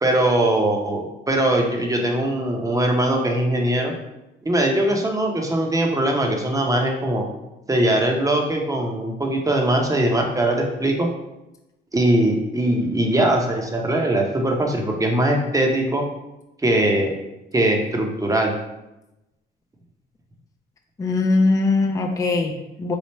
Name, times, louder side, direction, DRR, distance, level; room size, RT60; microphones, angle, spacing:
voice 1, 0.0-3.9 4.4-7.2 7.7-11.1 11.9-16.0 16.6-17.1 17.5-18.5, right 1 dB, 15° right, 1 dB, 0.7 m, -21 dB
voice 2, 21.0-23.0, left 3 dB, 15° left, 2 dB, 0.4 m, -21 dB
3.2 x 2.4 x 4.2 m, 0.94 s
cardioid pair, 90°, 20 cm